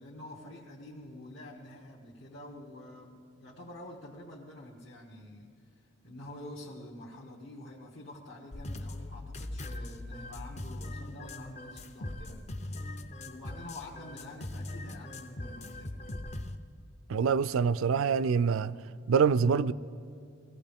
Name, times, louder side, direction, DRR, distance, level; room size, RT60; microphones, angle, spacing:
voice 1, 0.0-12.7 13.2-16.0, left 1 dB, 60° left, 1.2 m, -47 dB
sound 1, 8.5-16.6, left 1 dB, 30° left, 0.5 m, -40 dB
voice 2, 17.1-18.7 19.1-19.7, right 6 dB, 75° right, 0.4 m, -25 dB
19.5 x 15.5 x 3.6 m
head